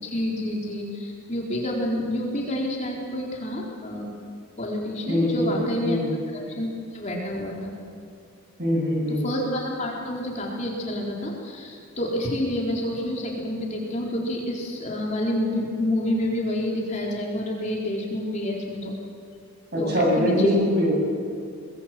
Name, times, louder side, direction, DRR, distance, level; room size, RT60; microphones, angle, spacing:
voice 1, 0.0-4.1 4.6-6.0 6.3-7.7 9.1-19.0 19.8-19.9 20.2-20.5, left 1 dB, 35° left, -2 dB, 4.2 m, -28 dB
voice 2, 5.1-5.5 5.8-6.1 8.6-9.3 19.7-20.9, equal, 50° right, 0 dB, 8.0 m, -22 dB
24.5 x 21.0 x 7.8 m, 2.3 s
head